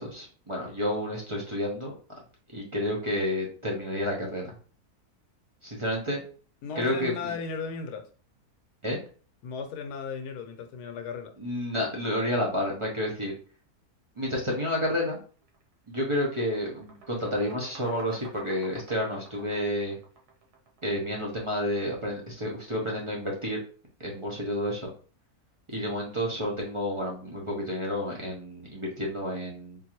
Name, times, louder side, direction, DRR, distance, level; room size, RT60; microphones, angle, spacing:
voice 1, 0.0-1.9 2.5-4.5 5.6-6.2 6.8-7.3 8.8-9.0 11.4-13.4 14.2-15.2 15.9-20.0 20.8-23.6 24.0-24.9 25.7-29.8, left 1 dB, 35° right, 0.5 m, -30 dB
voice 2, 6.6-8.1 9.4-11.3 25.8-25.9, left 5 dB, 80° left, 1.2 m, -36 dB
sound 1, 15.4-15.6 16.0-20.9, right 3 dB, 80° right, 1.5 m, -49 dB
3.7 x 2.6 x 2.9 m
omnidirectional pair, 1.7 m